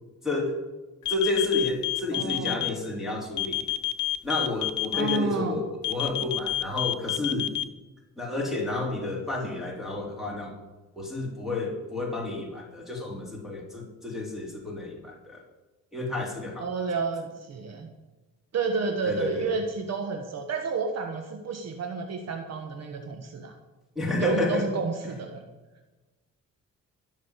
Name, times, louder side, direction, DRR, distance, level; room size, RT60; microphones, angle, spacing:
voice 1, 0.2-0.6 1.1-3.6 4.2-7.6 8.2-10.5 11.0-15.4 15.9-16.7 19.0-19.5 23.9-24.7, left 2 dB, ahead, -3 dB, 3.3 m, -30 dB
sound 1, 1.0-2.7 3.4-5.2 5.8-7.6, left 16 dB, 75° left, 0.9 m, -28 dB
voice 2, 2.1-2.7 4.9-5.6 16.6-17.9 18.5-23.5 24.2-25.4, right 4 dB, 60° right, 4 dB, 1.5 m, -30 dB
15.0 x 6.6 x 8.3 m, 1.2 s
cardioid pair, 90°, 30 cm